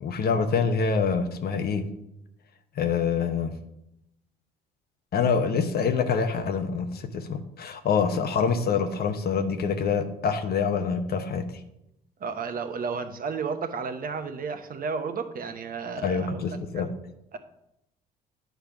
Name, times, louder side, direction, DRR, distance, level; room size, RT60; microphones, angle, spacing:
voice 1, 0.0-1.9 2.8-3.5 5.1-11.4 16.0-16.9, left 5 dB, 50° left, 8 dB, 0.9 m, -26 dB
voice 2, 12.2-16.8 17.3-17.4, right 5 dB, 45° right, 9 dB, 0.9 m, -33 dB
9.1 x 3.4 x 5.9 m, 0.83 s
hypercardioid pair, 55°, 21 cm